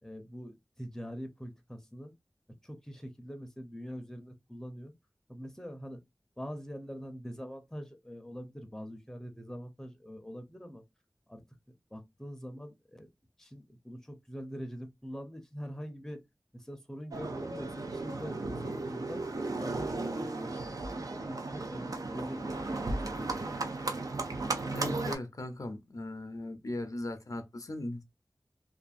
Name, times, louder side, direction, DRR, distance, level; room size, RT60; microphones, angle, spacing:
voice 1, 0.0-2.1 2.6-4.9 5.3-6.0 6.4-10.8 11.3-11.4 11.9-13.1 13.4-16.2 16.5-19.2 19.6-23.5, equal, 5° left, 0.6 m, -44 dB
Livestock farm animals working animals, 17.1-25.1, right 2 dB, 65° right, 0.5 m, -35 dB
voice 2, 24.7-28.0, left 2 dB, 60° left, 0.5 m, -38 dB
2.6 x 2.4 x 2.4 m
wide cardioid pair, 50°, 7 cm